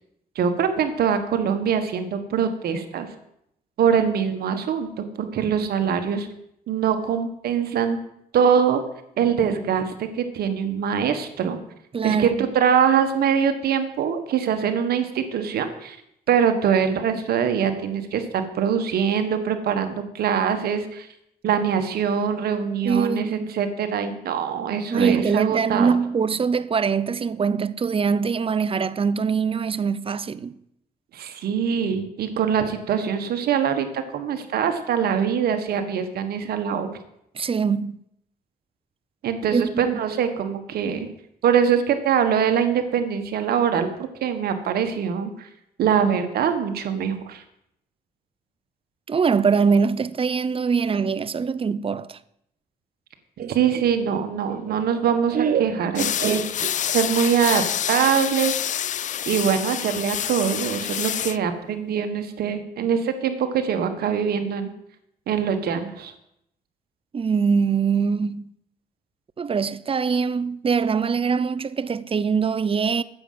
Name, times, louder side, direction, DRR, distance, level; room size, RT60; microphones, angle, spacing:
voice 1, 0.3-3.1 3.8-6.3 6.7-8.0 8.3-8.8 9.2-11.6 12.0-16.0 16.3-21.1 21.4-26.0 31.1-36.9 39.2-41.1 41.4-43.9 44.2-45.5 45.8-47.4 53.5-56.6 56.9-58.6 59.3-64.7 65.3-66.1, right 7 dB, 80° right, 1.5 m, -23 dB
voice 2, 11.9-12.5 22.8-23.5 24.9-30.6 37.3-38.0 39.5-39.9 49.1-52.2 67.1-68.5 69.4-73.0, right 5 dB, 35° right, 0.6 m, -23 dB
Laughter, 53.4-57.0, right 7 dB, 65° right, 1.0 m, -29 dB
sound 1, 55.9-61.4, left 10 dB, 50° left, 0.4 m, -27 dB
9.7 x 7.7 x 7.5 m
cardioid pair, 75°, 16 cm